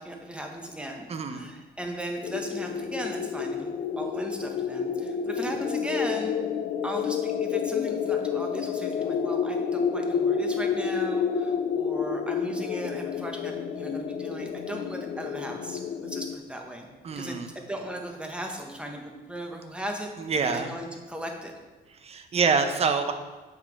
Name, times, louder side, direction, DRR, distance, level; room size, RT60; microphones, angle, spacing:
voice 1, 0.0-6.4 6.8-20.1 20.4-21.5, right 1 dB, 5° right, 2 dB, 1.2 m, -37 dB
voice 2, 1.1-1.5 17.0-17.5 20.3-20.7 22.0-23.1, right 5 dB, 35° right, 7 dB, 0.8 m, -26 dB
sound 1, 2.2-16.4, left 6 dB, 50° left, 0.5 m, -29 dB
7.5 x 5.7 x 4.7 m, 1.3 s
cardioid pair, 110°, 17 cm